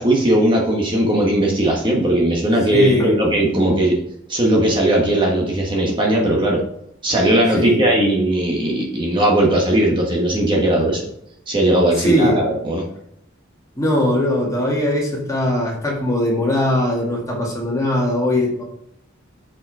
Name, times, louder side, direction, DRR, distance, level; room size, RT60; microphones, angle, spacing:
voice 1, 0.0-3.9 4.3-6.6 7.0-11.0 11.5-12.8, right 1 dB, 25° right, -1 dB, 1.4 m, -18 dB
voice 2, 2.7-3.2 7.5-7.8 12.0-12.4 13.8-18.6, left 1 dB, 15° left, -2 dB, 2.1 m, -20 dB
6.5 x 5.4 x 4.7 m, 0.74 s
head